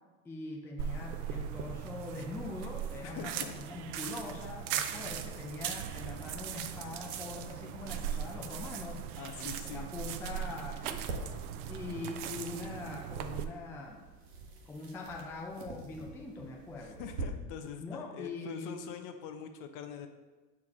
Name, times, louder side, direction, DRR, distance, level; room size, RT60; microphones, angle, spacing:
voice 1, 0.2-9.0 9.4-11.0 11.7-14.0 14.7-17.0 17.8-19.0, left 3 dB, 5° left, 0 dB, 0.4 m, -42 dB
sound 1, 0.8-13.4, right 9 dB, 65° right, 0.7 m, -39 dB
voice 2, 3.0-3.5 9.2-9.9 16.8-20.1, left 7 dB, 45° left, 7 dB, 0.7 m, -43 dB
sound 2, 10.8-17.2, right 4 dB, 85° right, 1.3 m, -46 dB
6.5 x 4.7 x 3.6 m, 1.3 s
hypercardioid pair, 105°, 46 cm